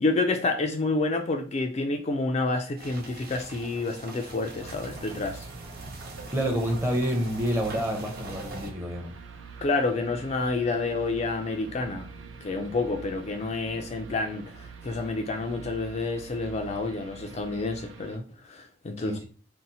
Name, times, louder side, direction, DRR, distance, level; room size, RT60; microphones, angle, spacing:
voice 1, 0.0-5.5 9.6-12.1 12.4-19.2, left 3 dB, 35° left, 0.3 m, -29 dB
sound 1, 2.8-8.7, right 1 dB, 50° right, 0.8 m, -42 dB
sound 2, 4.6-18.2, right 5 dB, 75° right, 0.4 m, -45 dB
voice 2, 6.3-9.1 19.0-19.2, equal, 15° right, 0.7 m, -28 dB
2.7 x 2.0 x 3.9 m
head